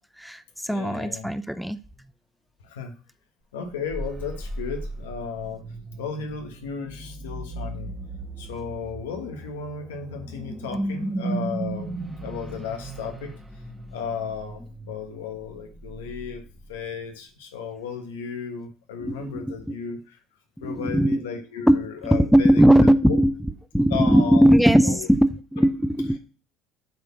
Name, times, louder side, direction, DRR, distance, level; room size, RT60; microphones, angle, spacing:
voice 1, 0.2-1.8 19.0-19.8 20.6-21.3 21.7-23.4 23.7-26.2, equal, ahead, 0.6 m, -19 dB
voice 2, 0.7-1.3 2.7-2.9 3.5-5.6 6.0-7.9 8.4-13.3 13.9-16.4 16.7-20.2 20.6-22.6 23.1-23.2 23.9-24.4 24.8-25.1, left 6 dB, 90° left, 1.3 m, -34 dB
sound 1, 3.7-17.2, right 2 dB, 15° right, 1.2 m, -36 dB
7.8 x 3.7 x 5.8 m
hypercardioid pair, 80°, 0 cm